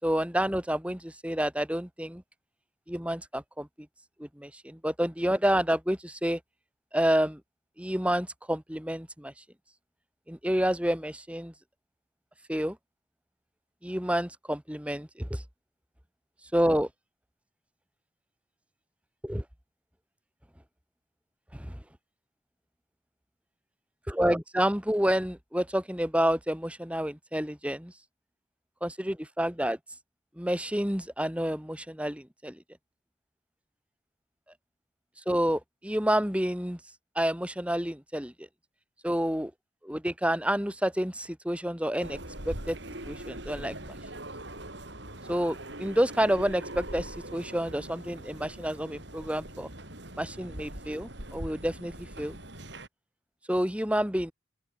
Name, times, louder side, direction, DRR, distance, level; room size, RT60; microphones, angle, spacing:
voice 1, 0.0-2.2 2.9-3.7 4.2-6.4 6.9-7.4 7.8-9.3 10.3-11.5 12.5-12.8 13.8-15.4 16.5-16.9 19.2-19.4 21.5-21.8 24.1-27.9 28.8-29.8 30.4-32.6 35.3-36.8 37.1-38.5 39.0-39.5 39.8-42.2 42.5-42.8 43.0-44.0 45.3-49.7 50.2-52.4 53.5-54.3, equal, 5° right, 2.7 m, -29 dB
sound 1, 42.0-52.9, right 1 dB, 55° right, 6.2 m, -42 dB
open air
head